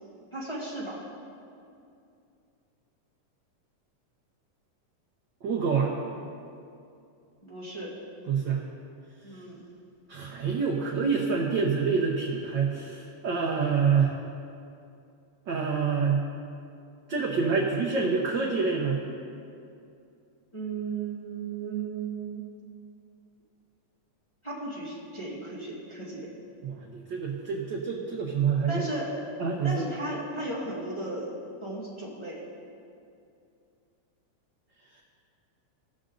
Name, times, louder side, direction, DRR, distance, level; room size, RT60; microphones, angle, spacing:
voice 1, 0.3-1.0 7.4-7.9 9.2-9.6 20.5-22.4 24.4-26.3 28.7-29.2 29.6-31.3 31.6-32.4, right 2 dB, 15° left, -7 dB, 1.0 m, -35 dB
voice 2, 5.4-5.9 8.3-8.6 10.1-14.1 15.5-16.2 17.1-19.0 26.6-28.9 29.4-29.9 35.0-35.1, right 5 dB, 85° right, -3 dB, 1.0 m, -27 dB
17.5 x 6.5 x 3.9 m, 2.5 s
omnidirectional pair, 3.4 m